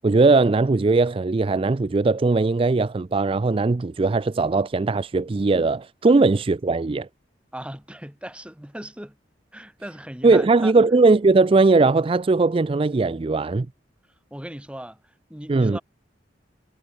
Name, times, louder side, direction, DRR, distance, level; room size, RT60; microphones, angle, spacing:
voice 1, 0.0-7.1 10.2-13.7 15.5-15.8, right 3 dB, 30° right, 0.4 m, -19 dB
voice 2, 7.5-9.2 9.5-10.7 14.3-15.8, equal, 5° right, 5.0 m, -38 dB
head